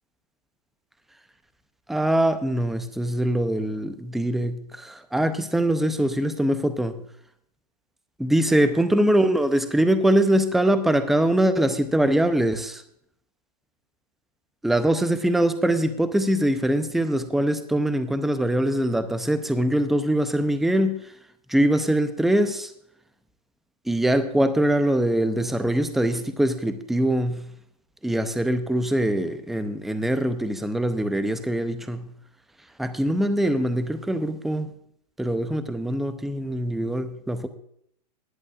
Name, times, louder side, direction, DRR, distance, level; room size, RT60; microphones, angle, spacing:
voice 1, 1.9-7.0 8.2-12.8 14.6-21.1 21.5-22.7 23.9-27.5 28.0-32.1 32.8-34.7 35.2-37.5, right 1 dB, ahead, 0.6 m, -23 dB
19.0 x 10.5 x 2.4 m
hypercardioid pair, 135°, 21 cm